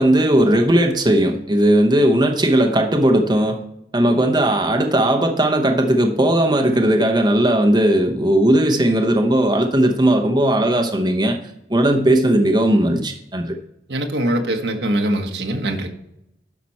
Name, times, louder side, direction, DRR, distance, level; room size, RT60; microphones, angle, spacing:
voice 1, 0.0-3.6 3.9-11.4 11.7-13.6, right 1 dB, 25° right, 3 dB, 0.8 m, -17 dB
voice 2, 13.9-15.9, right 1 dB, 85° right, 4 dB, 1.3 m, -22 dB
10.5 x 5.9 x 4.3 m, 0.80 s
head